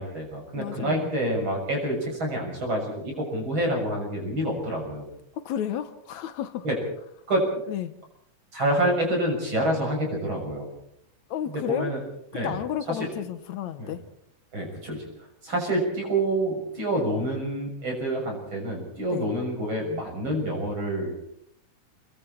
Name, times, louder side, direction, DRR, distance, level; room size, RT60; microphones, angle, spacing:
voice 1, 0.0-5.1 6.6-6.8 7.3-7.4 8.5-10.7 11.5-12.0 12.3-12.6 12.9-13.1 13.8-13.9 14.5-21.1, right 1 dB, 40° right, 7.4 m, -27 dB
voice 2, 0.6-1.1 5.4-6.6 7.7-8.0 11.3-11.9 12.3-14.1 19.1-19.3, left 10 dB, 75° left, 2.3 m, -32 dB
29.5 x 21.5 x 4.5 m
omnidirectional pair, 3.3 m